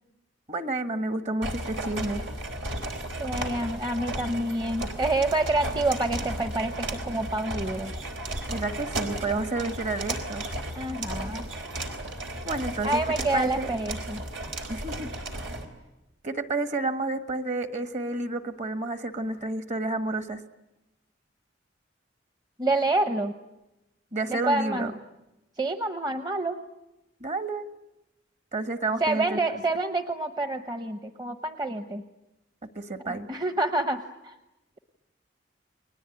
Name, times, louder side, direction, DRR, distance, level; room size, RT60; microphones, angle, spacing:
voice 1, 0.5-2.2 8.5-10.4 12.4-13.0 13.3-13.7 14.7-15.1 16.2-20.4 24.1-24.9 27.2-27.7 28.5-29.6 32.7-33.3, right 2 dB, 40° right, 10 dB, 1.5 m, -30 dB
sound 1, 1.4-15.7, right 1 dB, 90° right, 3.8 m, -34 dB
voice 2, 3.2-7.9 10.8-11.5 12.8-14.2 22.6-23.3 24.3-24.9 25.6-26.6 29.0-32.0 33.1-34.3, right 2 dB, 20° right, 8 dB, 0.9 m, -28 dB
30.0 x 21.0 x 9.1 m, 0.97 s
head